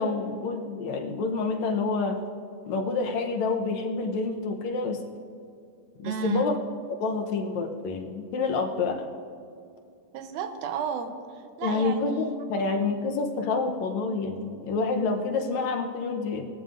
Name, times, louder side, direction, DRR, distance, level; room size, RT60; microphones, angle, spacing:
voice 1, 0.0-2.2 2.7-5.0 6.0-6.6 7.0-9.1 11.6-16.4, left 4 dB, 70° left, 3 dB, 2.1 m, -28 dB
voice 2, 6.0-6.5 10.1-12.4, right 7 dB, 85° right, 7 dB, 2.3 m, -33 dB
19.0 x 13.0 x 2.5 m, 2.4 s
omnidirectional pair, 3.4 m